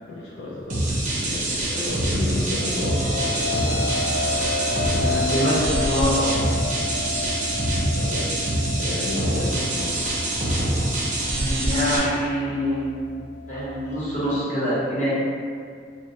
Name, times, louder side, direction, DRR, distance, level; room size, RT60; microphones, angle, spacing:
voice 1, 0.1-3.0 7.9-8.4 8.8-10.0, left 2 dB, 80° left, -6 dB, 0.4 m, -32 dB
sound 1, 0.7-12.0, right 1 dB, 45° right, 0.4 m, -25 dB
sound 2, 2.1-14.4, left 3 dB, 15° left, 0.6 m, -31 dB
voice 2, 4.8-6.3 11.6-13.2 13.5-15.1, equal, 40° left, -11 dB, 0.9 m, -25 dB
2.2 x 2.1 x 2.8 m, 2.1 s
head